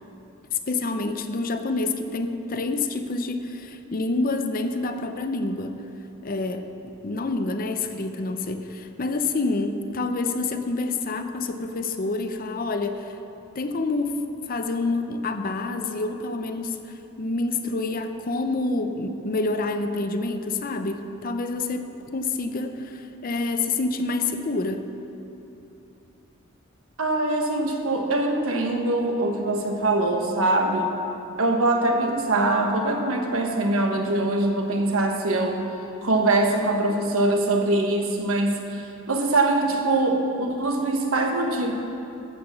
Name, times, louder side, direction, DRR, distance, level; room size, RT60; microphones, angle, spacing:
voice 1, 0.5-5.8 6.2-13.2 13.6-24.8, left 3 dB, 40° left, 8 dB, 0.6 m, -28 dB
voice 2, 27.0-31.0 31.4-35.6 36.0-41.7, right 2 dB, 75° right, 3 dB, 1.3 m, -23 dB
13.5 x 5.9 x 7.0 m, 2.9 s
head